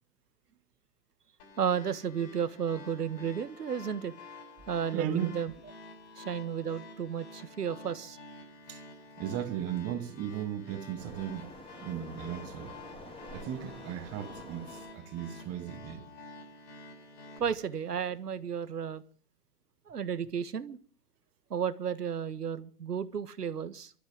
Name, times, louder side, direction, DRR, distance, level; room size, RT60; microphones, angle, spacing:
sound 1, 1.4-17.4, left 3 dB, 50° left, 7.0 m, -50 dB
voice 1, 1.6-4.1 4.7-5.5 6.2-8.2 17.4-19.0 19.9-20.8 21.5-23.9, right 7 dB, 90° right, 1.6 m, -33 dB
voice 2, 4.9-5.4 8.7-8.8 9.2-11.5 11.8-12.7 13.3-16.1, right 10 dB, 30° right, 2.4 m, -36 dB
Waves surf, 11.0-15.0, left 1 dB, 10° left, 4.8 m, -48 dB
26.0 x 13.5 x 3.7 m
hypercardioid pair, 120°, 46 cm